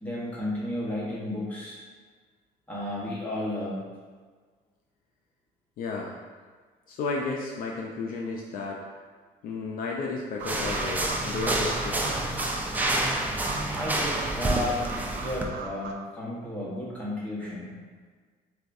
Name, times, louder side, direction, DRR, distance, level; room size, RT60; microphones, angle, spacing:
voice 1, 0.0-1.8 2.7-3.8 13.7-17.7, left 1 dB, 10° left, -7 dB, 1.0 m, -33 dB
voice 2, 5.8-6.2 6.9-8.9 9.4-12.3, left 3 dB, 55° left, -1 dB, 0.4 m, -33 dB
sound 1, 10.4-15.5, right 1 dB, 10° right, 0.3 m, -28 dB
sound 2, 10.4-15.9, right 5 dB, 80° right, 0.4 m, -38 dB
4.4 x 2.3 x 2.5 m, 1.5 s
cardioid pair, 110°, 17 cm